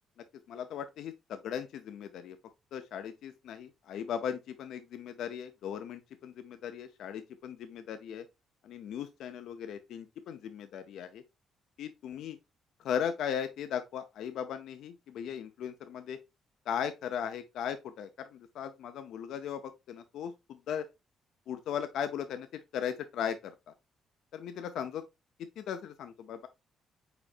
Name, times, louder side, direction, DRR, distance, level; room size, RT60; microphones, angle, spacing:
voice 1, 0.5-2.4 2.7-8.3 8.6-11.2 11.8-12.4 12.8-16.2 16.7-20.8 21.5-22.5 22.7-23.7 24.3-25.0 25.6-26.5, left 8 dB, 80° left, 0.5 m, -37 dB
4.9 x 4.3 x 2.4 m
cardioid pair, 90°, 0 cm